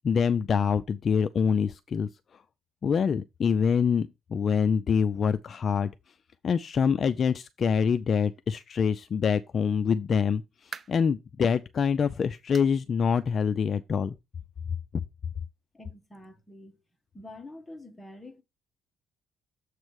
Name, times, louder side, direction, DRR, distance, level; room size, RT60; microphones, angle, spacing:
voice 1, 0.0-2.1 2.8-5.9 6.4-14.2, left 6 dB, 40° left, 0.4 m, -25 dB
sound 1, 10.3-11.1 11.6-11.8 12.5-12.8 13.1-13.2 13.7-13.8 14.9-15.0, right 5 dB, 35° right, 0.4 m, -45 dB
voice 2, 15.7-16.8 17.1-18.4, left 1 dB, 10° left, 1.2 m, -46 dB
7.3 x 3.2 x 6.2 m
cardioid pair, 130°, 0 cm